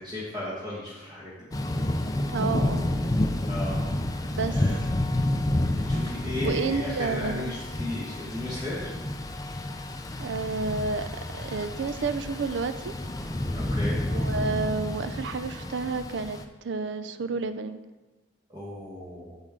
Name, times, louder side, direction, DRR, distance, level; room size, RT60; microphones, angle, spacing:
voice 1, 0.0-1.4 3.5-4.8 5.7-8.9 13.5-14.0 18.5-19.4, left 1 dB, 25° right, -8 dB, 1.8 m, -36 dB
Thunder / Rain, 1.5-16.4, left 1 dB, 20° left, 0.5 m, -29 dB
voice 2, 2.3-2.9 4.3-4.6 6.2-7.5 10.2-11.0 11.3-12.9 14.1-17.8, right 4 dB, 70° right, 11 dB, 0.5 m, -30 dB
8.5 x 6.1 x 3.8 m, 1.2 s
head